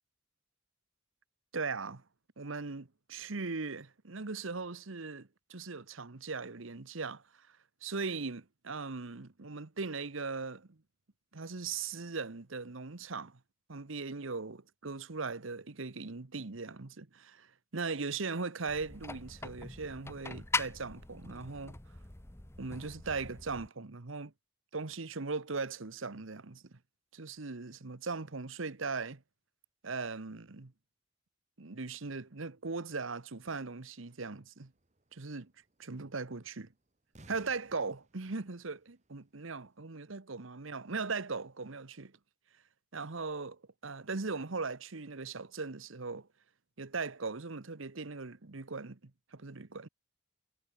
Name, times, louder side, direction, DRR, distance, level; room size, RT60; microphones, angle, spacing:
voice 1, 1.5-2.0 2.4-7.2 7.8-10.8 11.3-13.4 13.7-21.8 22.6-24.3 24.7-26.6 27.1-29.2 29.8-30.7 31.6-34.7 35.1-35.5 35.8-36.7 37.3-42.1 42.9-46.3 46.8-49.9, right 4 dB, 70° right, 1.2 m, -39 dB
sound 1, 18.7-23.7, left 3 dB, 15° left, 0.8 m, -41 dB
sound 2, 34.7-39.7, right 1 dB, 35° right, 2.2 m, -61 dB
head